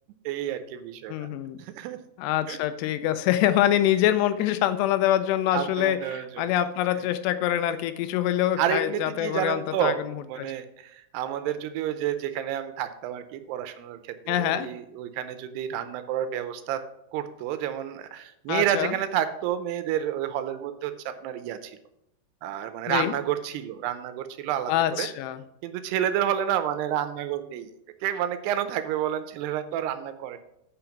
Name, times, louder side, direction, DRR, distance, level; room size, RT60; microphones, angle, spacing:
voice 1, 0.3-1.3 1.6-2.0 2.5-2.6 5.5-6.5 8.6-10.0 10.3-16.8 17.1-21.8 22.4-25.1 25.6-27.7 28.0-30.4, right 10 dB, 80° right, 10 dB, 2.7 m, -30 dB
voice 2, 1.1-1.6 2.2-10.2 14.3-14.7 18.5-18.9 22.9-23.1 24.7-25.4, left 12 dB, 85° left, 11 dB, 2.8 m, -25 dB
8.8 x 5.7 x 5.8 m, 0.81 s
omnidirectional pair, 4.8 m